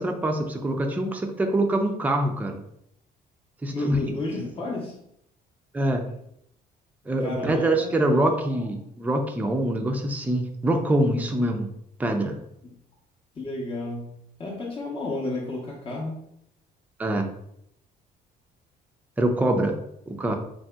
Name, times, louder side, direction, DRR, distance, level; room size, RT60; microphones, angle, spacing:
voice 1, 0.0-2.6 3.6-4.0 4.4-4.5 5.7-6.0 7.1-11.7 12.0-12.4 17.0-17.3 19.2-19.8 20.1-20.4, right 1 dB, 10° right, 4 dB, 0.4 m, -24 dB
voice 2, 3.7-5.0 7.2-8.0 8.4-8.6 12.6-12.7 13.4-14.1 14.4-16.2, left 2 dB, 35° left, -3 dB, 0.7 m, -32 dB
3.3 x 2.7 x 2.2 m, 0.75 s
cardioid pair, 110°, 17 cm